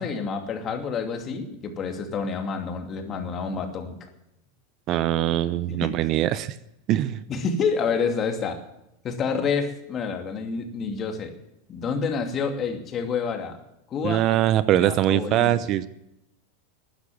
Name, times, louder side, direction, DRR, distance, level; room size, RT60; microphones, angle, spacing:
voice 1, 0.0-4.0 5.7-5.9 7.3-8.6 9.0-11.3 11.7-13.6 13.9-14.4 14.8-15.6, left 5 dB, 35° left, 5 dB, 2.7 m, -28 dB
voice 2, 4.9-6.5 6.9-7.2 14.0-15.9, right 13 dB, 45° right, 16 dB, 0.7 m, -22 dB
13.0 x 9.6 x 9.4 m, 0.84 s
hypercardioid pair, 100°, 0 cm